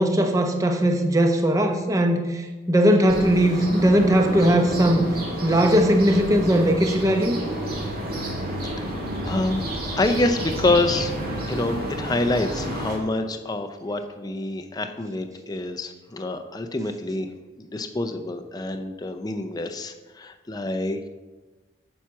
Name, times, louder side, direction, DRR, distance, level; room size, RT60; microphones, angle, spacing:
voice 1, 0.0-5.0 5.4-7.4, equal, 15° right, 4 dB, 0.7 m, -19 dB
sound 1, 3.1-13.0, right 1 dB, 50° right, 1.9 m, -30 dB
voice 2, 8.9-11.1 11.4-17.3 17.6-21.1, left 2 dB, 20° left, 7 dB, 0.4 m, -27 dB
7.3 x 7.2 x 4.6 m, 1.2 s
head